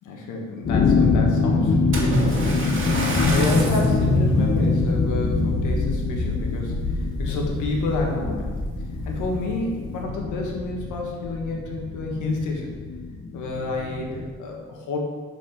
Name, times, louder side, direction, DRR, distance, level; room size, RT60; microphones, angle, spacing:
voice 1, 0.0-8.5 9.0-12.7 13.3-15.0, left 2 dB, 90° left, 0 dB, 1.6 m, -29 dB
sound 1, 0.6-14.3, left 3 dB, 40° left, 0.8 m, -24 dB
Splash splatter, 1.9-4.0 4.6-4.8 5.4-5.5, right 2 dB, 40° right, 2.0 m, -28 dB
6.8 x 5.0 x 5.9 m, 1.5 s
cardioid pair, 90°, 30 cm